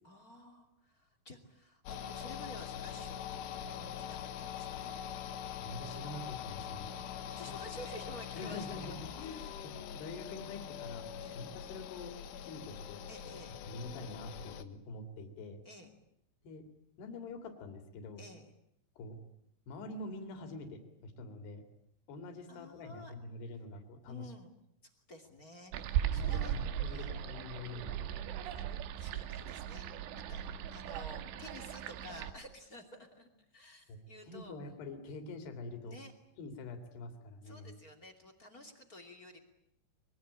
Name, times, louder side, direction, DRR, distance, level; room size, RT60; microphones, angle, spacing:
voice 1, 0.0-4.9 7.0-8.6 9.1-9.6 11.2-11.4 13.1-13.6 15.6-16.0 18.2-18.5 22.5-23.1 24.1-24.5 24.8-26.6 26.8-27.1 28.5-29.9 30.1-34.6 35.8-36.1 37.4-39.4, left 1 dB, 25° left, 4 dB, 2.1 m, -52 dB
sound 1, 1.9-14.6, left 9 dB, 80° left, 3.8 m, -43 dB
voice 2, 5.6-6.9 8.4-13.4 13.7-15.6 16.4-16.6 17.0-18.2 19.0-19.2 19.7-21.6 22.1-24.3 26.1-28.2 33.9-36.0 36.4-37.7, left 2 dB, 60° left, 7 dB, 5.1 m, -46 dB
sound 2, 25.7-32.3, right 10 dB, 75° right, 3.7 m, -37 dB
25.5 x 23.0 x 8.8 m, 0.74 s
omnidirectional pair, 5.7 m